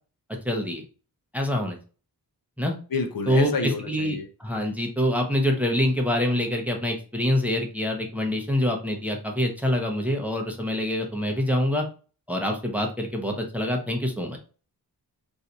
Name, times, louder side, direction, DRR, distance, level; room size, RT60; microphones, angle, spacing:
voice 1, 0.3-0.8 1.3-1.8 2.6-2.7 3.3-11.9 12.3-14.4, left 1 dB, 5° right, 2 dB, 0.6 m, -25 dB
voice 2, 2.9-4.3, left 4 dB, 65° left, 7 dB, 0.6 m, -28 dB
2.6 x 2.3 x 4.1 m, 0.37 s
wide cardioid pair, 100°, 38 cm